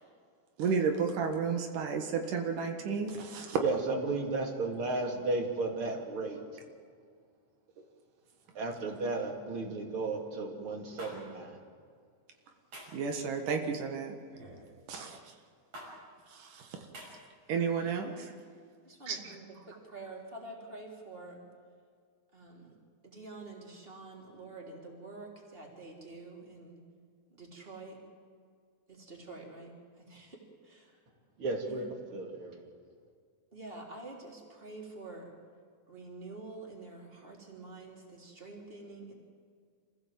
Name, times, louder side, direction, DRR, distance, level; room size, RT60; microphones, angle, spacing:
voice 1, 0.6-3.6 12.9-14.1 14.9-15.2 16.3-16.8 17.5-18.3 19.1-19.3, right 6 dB, 85° right, 4 dB, 3.2 m, -32 dB
voice 2, 3.6-6.4 8.5-11.6 31.4-32.7, right 3 dB, 45° right, 2 dB, 3.2 m, -34 dB
sound 1, 11.0-11.1 12.7-13.0 14.3-14.6 15.7-15.9 16.9-17.1, right 1 dB, 60° right, 7.1 m, -46 dB
voice 3, 18.8-21.4 22.3-22.7 23.0-26.8 27.3-28.0 28.9-30.9 31.7-31.8 33.5-35.3 35.9-39.1, right 2 dB, 15° right, -1 dB, 3.7 m, -47 dB
27.0 x 15.5 x 7.7 m, 2.1 s
omnidirectional pair, 3.6 m